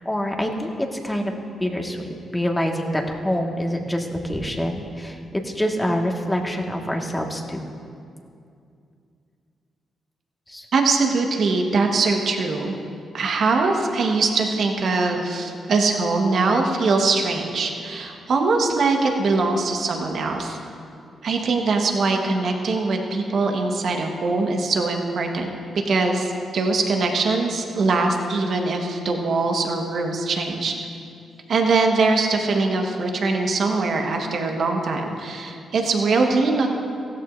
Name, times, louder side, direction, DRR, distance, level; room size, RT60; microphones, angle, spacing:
voice 1, 0.0-1.3 1.6-7.7 10.5-10.7, equal, 15° left, 1 dB, 1.8 m, -26 dB
voice 2, 10.7-12.7 13.1-20.6 21.2-25.5 25.8-30.7 31.5-36.7, right 3 dB, 65° right, 2 dB, 1.4 m, -22 dB
16.0 x 14.0 x 2.7 m, 2.5 s
hypercardioid pair, 45°, 0 cm